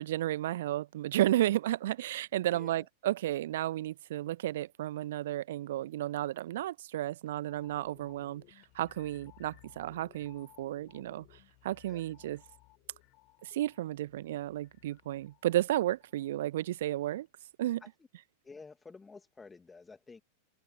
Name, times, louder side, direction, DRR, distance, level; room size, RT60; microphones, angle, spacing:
voice 1, 0.0-12.4 13.4-17.3 17.6-17.8, right 14 dB, 55° right, 1.3 m, -33 dB
voice 2, 2.5-2.9 11.9-12.3 17.8-17.9 18.4-20.2, left 4 dB, 10° left, 2.3 m, -51 dB
sound 1, 7.5-16.8 17.1-17.3, left 23 dB, 40° left, 5.1 m, -61 dB
figure-of-eight pair, 90°, 0 cm